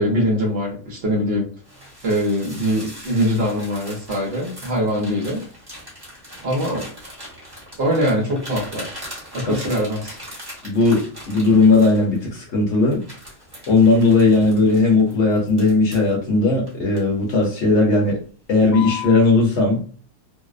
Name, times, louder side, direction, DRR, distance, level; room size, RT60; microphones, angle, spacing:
voice 1, 0.0-1.5 2.0-5.4 6.4-6.9 7.8-9.0 9.3-10.2, equal, 55° right, -3 dB, 0.9 m, -22 dB
sound 1, 1.6-12.4 12.9-16.1 16.7-17.6 17.9-18.2 18.6-19.2, left 2 dB, 20° right, 1.0 m, -39 dB
voice 2, 10.6-13.0 13.7-18.2 18.5-19.9, left 3 dB, 60° left, -1 dB, 1.0 m, -17 dB
2.6 x 2.0 x 2.4 m, 0.41 s
omnidirectional pair, 1.5 m